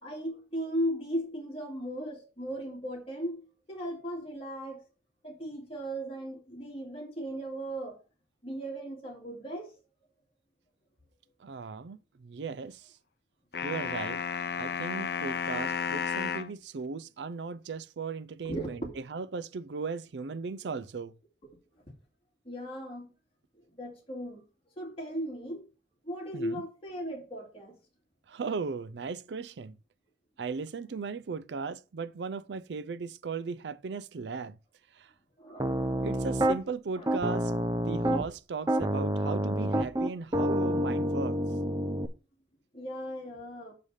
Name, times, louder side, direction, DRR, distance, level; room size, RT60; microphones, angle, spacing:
voice 1, 0.0-4.8 5.2-8.0 8.4-9.7 18.4-19.0 22.4-23.1 23.7-24.4 24.8-25.6 26.0-27.8 35.4-36.4 37.0-37.1 42.7-43.7, equal, 35° left, 2.5 m, -37 dB
voice 2, 11.4-12.9 13.6-14.2 14.5-21.1 26.3-26.6 28.3-29.8 30.4-34.6 35.0-35.1 36.0-37.5 37.9-41.4, right 4 dB, 85° right, 0.5 m, -37 dB
sound 1, 13.5-16.5, left 6 dB, 65° left, 0.6 m, -32 dB
Piano, 35.6-36.6 37.1-38.3 38.7-42.1, right 1 dB, 20° right, 0.6 m, -28 dB
6.7 x 4.8 x 5.5 m
head